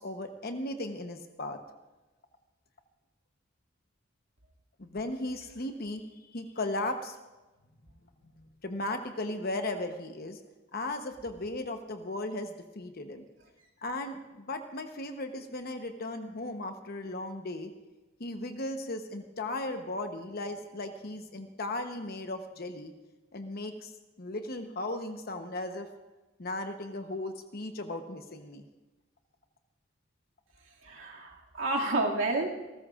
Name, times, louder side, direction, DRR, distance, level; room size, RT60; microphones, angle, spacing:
voice 1, 0.0-1.6 4.8-7.2 8.6-10.4 10.7-13.3 13.8-17.7 18.2-22.9 23.3-23.9 24.2-25.9 26.4-28.6, left 2 dB, 50° left, 6 dB, 1.0 m, -36 dB
voice 2, 30.8-32.6, right 2 dB, 85° right, -1 dB, 2.3 m, -30 dB
29.0 x 13.5 x 2.5 m, 1.1 s
head